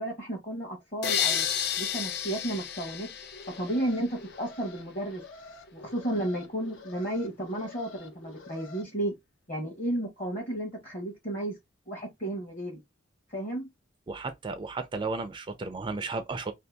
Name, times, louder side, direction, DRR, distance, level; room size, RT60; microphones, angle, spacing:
voice 1, 0.0-1.5 1.8-5.2 5.7-9.1 9.5-11.5 11.9-12.8 13.3-13.7, right 1 dB, 40° left, 0.9 m, -33 dB
sound 1, 1.0-4.0, left 9 dB, 55° left, 0.4 m, -31 dB
Alarm, 3.2-8.8, left 3 dB, 85° left, 0.7 m, -48 dB
voice 2, 14.1-16.5, right 3 dB, 25° right, 0.3 m, -34 dB
2.7 x 2.6 x 3.3 m
head